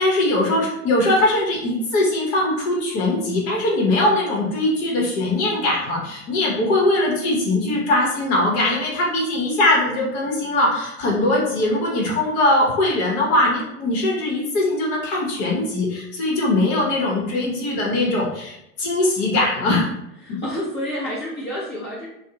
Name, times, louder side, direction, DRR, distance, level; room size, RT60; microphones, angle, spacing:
voice 1, 0.0-19.8 20.3-20.4, left 2 dB, 50° left, -2 dB, 0.9 m, -21 dB
voice 2, 20.2-22.1, equal, 25° left, -8 dB, 0.7 m, -29 dB
2.4 x 2.1 x 2.8 m, 0.83 s
hypercardioid pair, 105°, 44 cm